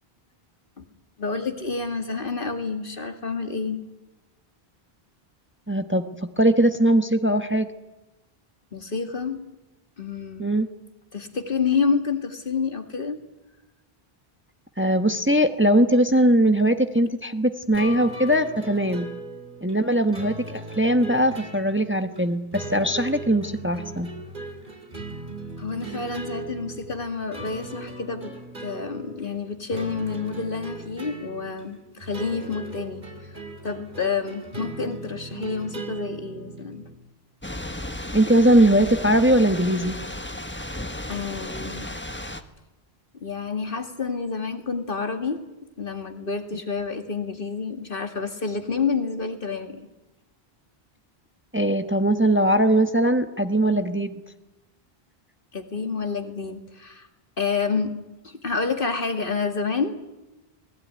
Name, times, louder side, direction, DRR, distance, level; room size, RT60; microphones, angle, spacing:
voice 1, 1.2-3.8 8.7-9.4 10.0-10.5 11.1-13.2 25.6-28.3 28.6-33.3 33.6-36.9 41.1-41.9 43.2-45.4 45.8-49.8 55.5-57.1 57.4-58.0 58.2-60.0, left 5 dB, 60° left, 6 dB, 2.3 m, -29 dB
voice 2, 5.7-7.7 10.4-10.7 14.8-19.1 19.6-24.1 38.1-40.0 51.5-54.2, right 1 dB, 10° right, 7 dB, 1.2 m, -20 dB
sound 1, 17.7-36.9, right 2 dB, 50° right, 3.0 m, -38 dB
Thunder / Rain, 37.4-42.4, left 1 dB, 10° left, 1.3 m, -34 dB
26.0 x 19.5 x 9.7 m, 1.0 s
omnidirectional pair, 1.0 m